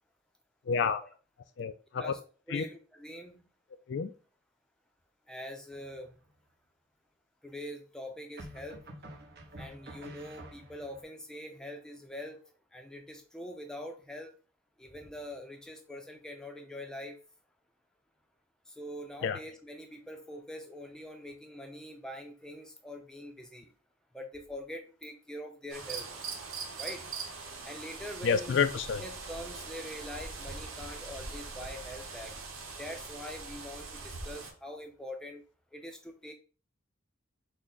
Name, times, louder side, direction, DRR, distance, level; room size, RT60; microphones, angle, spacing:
voice 1, 0.7-1.0 1.6-2.1 2.5-2.6 3.9-4.1 19.2-19.4 28.2-29.0, left 6 dB, 55° left, 10 dB, 0.3 m, -29 dB
voice 2, 2.5-3.4 5.3-6.1 7.4-8.8 9.6-12.4 12.7-14.3 14.8-17.2 18.7-23.7 24.1-26.1 26.8-27.0 27.6-28.6 29.0-32.3 32.8-35.4 35.7-36.3, left 1 dB, 5° left, 3 dB, 0.6 m, -44 dB
sound 1, 5.7-6.3 8.4-11.0, right 1 dB, 50° right, 1.0 m, -48 dB
sound 2, 25.7-34.5, right 4 dB, 80° right, 1.1 m, -42 dB
6.2 x 2.2 x 3.9 m, 0.37 s
head